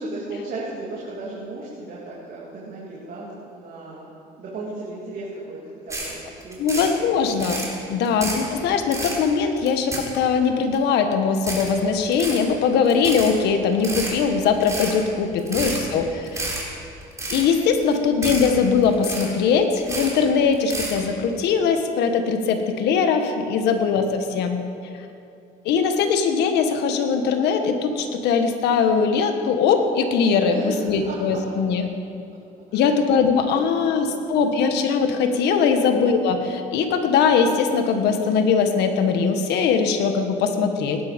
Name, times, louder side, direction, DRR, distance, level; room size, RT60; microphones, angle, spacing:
voice 1, 0.0-4.1 4.4-6.8 7.8-8.2 15.5-16.5 30.5-31.4 32.7-32.9 33.5-34.2 35.8-36.1, right 2 dB, 55° right, -6 dB, 3.1 m, -36 dB
sound 1, 5.9-6.1 6.4-6.9 7.3-7.7 8.0-8.5 8.8-9.2 9.6-10.4 10.7-10.8 11.4-11.7 12.1-12.4 12.8-13.3 13.7-14.1 14.6-14.9 15.4-15.8 16.2-16.6 17.0-17.5 17.8-17.9 18.2-18.5 18.8-19.4 19.8-20.2 20.5-21.0, right 2 dB, 20° right, 3.9 m, -30 dB
voice 2, 6.6-7.6 7.9-16.6 17.3-24.6 25.6-31.9 32.7-41.0, left 5 dB, 80° left, 6 dB, 1.5 m, -21 dB
18.0 x 11.5 x 5.3 m, 2.6 s
cardioid pair, 110°, 17 cm